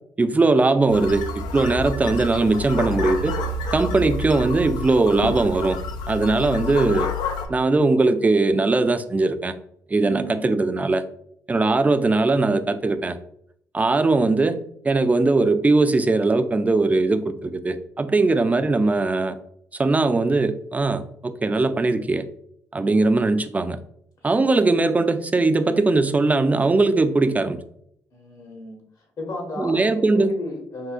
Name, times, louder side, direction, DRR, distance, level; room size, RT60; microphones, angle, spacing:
voice 1, 0.2-3.4 3.7-5.8 6.1-7.1 7.5-9.5 9.9-11.0 11.5-13.2 13.7-19.3 19.8-22.3 22.7-23.8 24.2-27.6 29.6-30.3, right 3 dB, 20° right, 0.3 m, -20 dB
goats on lanzarote, 0.9-7.5, left 3 dB, 80° left, 0.4 m, -29 dB
voice 2, 10.0-10.5 22.8-23.1 28.1-28.8 29.2-30.9, left 1 dB, 60° left, 1.2 m, -35 dB
3.6 x 2.7 x 2.3 m
supercardioid pair, 60°, 7 cm